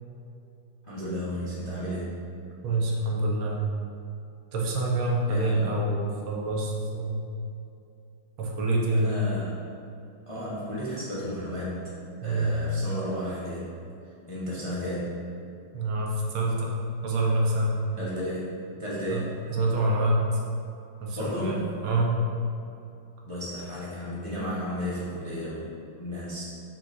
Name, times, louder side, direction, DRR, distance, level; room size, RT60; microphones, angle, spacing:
voice 1, 0.8-2.2 5.3-5.8 8.9-9.5 10.3-11.9 12.2-13.7 14.3-15.1 17.9-19.3 21.1-21.6 23.3-26.4, equal, 25° left, -8 dB, 0.7 m, -33 dB
voice 2, 2.6-3.6 4.5-7.2 8.4-9.1 12.2-12.6 15.7-16.7 17.0-17.8 19.1-20.2 21.0-22.2, right 2 dB, 75° right, -2 dB, 1.8 m, -26 dB
7.5 x 6.2 x 2.7 m, 2.6 s
omnidirectional pair, 2.4 m